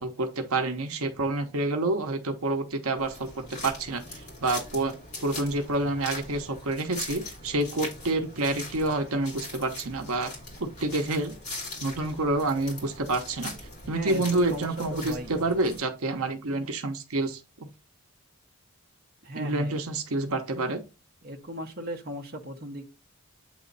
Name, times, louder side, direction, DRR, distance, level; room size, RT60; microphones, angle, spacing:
voice 1, 0.0-4.9 5.2-10.3 10.6-11.3 11.8-13.5 13.9-17.4 19.4-20.8, right 2 dB, 80° right, 5 dB, 0.9 m, -28 dB
sound 1, 3.0-15.8, left 2 dB, 30° left, 2.8 m, -41 dB
voice 2, 13.9-15.4 19.2-19.8 21.2-22.8, equal, 45° right, 2 dB, 1.0 m, -37 dB
8.0 x 3.1 x 4.0 m, 0.30 s
head